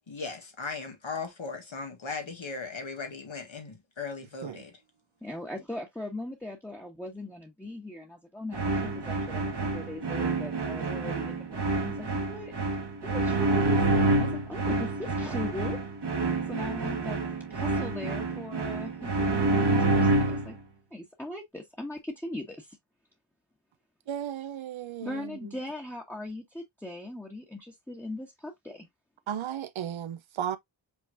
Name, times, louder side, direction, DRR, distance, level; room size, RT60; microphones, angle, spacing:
voice 1, 0.1-4.8, left 4 dB, 80° left, 1.6 m, -38 dB
voice 2, 5.2-12.5 13.0-15.8 16.5-17.2 17.5-20.6 20.9-22.8 25.0-28.9, left 1 dB, 5° left, 1.2 m, -39 dB
sound 1, 8.5-20.6, right 2 dB, 60° right, 1.4 m, -28 dB
voice 3, 24.1-25.3 29.3-30.6, right 9 dB, 80° right, 0.6 m, -34 dB
5.5 x 3.1 x 2.4 m
wide cardioid pair, 45°, 46 cm